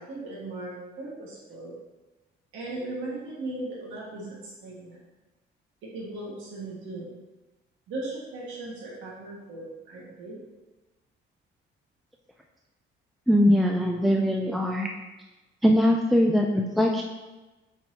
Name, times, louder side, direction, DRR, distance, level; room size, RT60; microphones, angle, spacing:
voice 1, 0.0-1.7 2.5-5.0 5.9-7.1 7.9-10.4 14.0-14.1, right 2 dB, 85° right, -6 dB, 1.7 m, -37 dB
voice 2, 13.3-14.9 15.6-17.0, equal, ahead, 1 dB, 0.3 m, -21 dB
8.6 x 4.5 x 2.8 m, 1.1 s
cardioid pair, 150°, 20 cm